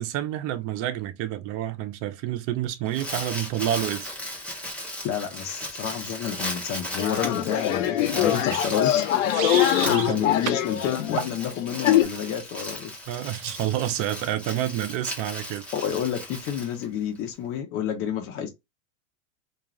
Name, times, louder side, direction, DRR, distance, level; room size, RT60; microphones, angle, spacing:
voice 1, 0.0-4.1 9.9-10.2 13.1-15.6, right 12 dB, 35° right, 0.6 m, -29 dB
Crumpling crinkling, 2.7-17.3, left 1 dB, 5° left, 0.8 m, -37 dB
voice 2, 5.0-9.0 9.8-13.0 15.7-18.5, left 8 dB, 35° left, 0.7 m, -29 dB
sound 1, 7.0-12.0, left 12 dB, 70° left, 0.6 m, -23 dB
sound 2, 8.3-10.1 10.4-10.7 11.2-11.4, right 11 dB, 85° right, 0.5 m, -33 dB
2.4 x 2.3 x 2.9 m
hypercardioid pair, 125°, 39 cm